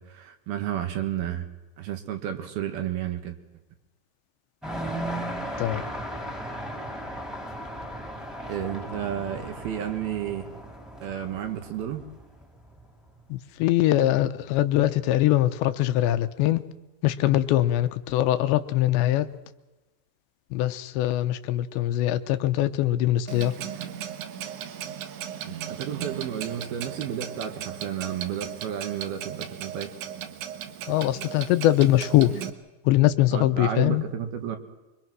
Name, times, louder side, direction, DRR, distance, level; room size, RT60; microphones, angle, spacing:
voice 1, 0.0-1.5 1.8-3.4 8.5-10.5 11.0-12.0 25.4-29.9 33.3-34.6, right 10 dB, 65° right, 7 dB, 3.3 m, -32 dB
sound 1, 4.6-12.9, right 1 dB, ahead, 2.7 m, -36 dB
voice 2, 13.3-16.6 17.0-19.3 20.5-23.5 30.9-32.3 32.9-34.0, left 14 dB, 80° left, 11 dB, 3.1 m, -22 dB
Clock, 23.3-32.5, right 9 dB, 80° right, 3.7 m, -37 dB
26.0 x 24.0 x 6.1 m, 1.1 s
omnidirectional pair, 5.2 m